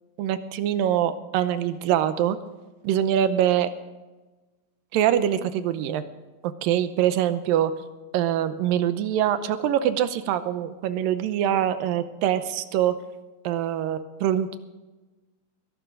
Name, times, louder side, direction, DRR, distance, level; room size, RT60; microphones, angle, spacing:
voice 1, 0.2-2.4 2.8-3.7 4.9-6.0 6.4-7.7 8.1-12.9 13.4-14.6, right 10 dB, 80° right, 11 dB, 2.4 m, -24 dB
21.5 x 12.0 x 3.8 m, 1.2 s
omnidirectional pair, 4.4 m